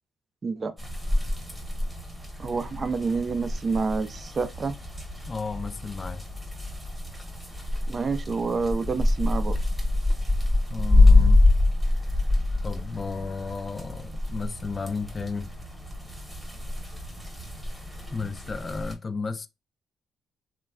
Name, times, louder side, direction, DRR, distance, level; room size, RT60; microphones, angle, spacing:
sound 1, 0.8-18.9, left 2 dB, ahead, 1.0 m, -25 dB
voice 1, 2.4-4.7 7.9-9.5, right 4 dB, 35° right, 0.4 m, -28 dB
voice 2, 5.3-6.2 10.7-11.5 12.6-15.5 18.1-19.5, left 4 dB, 30° left, 0.4 m, -33 dB
3.1 x 2.3 x 2.3 m
cardioid pair, 90°, 0 cm